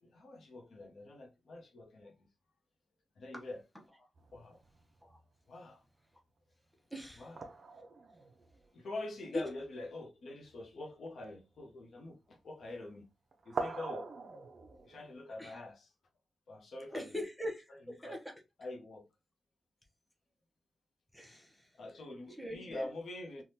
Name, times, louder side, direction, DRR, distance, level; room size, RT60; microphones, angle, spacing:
voice 1, 0.0-2.3 3.2-3.6 4.3-4.6 5.5-5.8 7.2-7.4 8.7-13.0 13.4-14.1 14.8-15.9 16.5-17.2 18.0-18.2 18.6-19.0 21.8-23.4, left 2 dB, 65° left, 0.8 m, -45 dB
sound 1, 4.1-5.3 7.4-9.6 10.5-10.6 10.9-11.7 12.6-13.0 13.3-15.1, right 3 dB, 45° right, 0.5 m, -44 dB
voice 2, 6.9-7.3 9.3-9.4 15.4-15.6 16.9-18.2 21.1-21.7 22.4-22.9, left 1 dB, ahead, 0.7 m, -41 dB
3.4 x 2.3 x 2.7 m
wide cardioid pair, 160°, 0 cm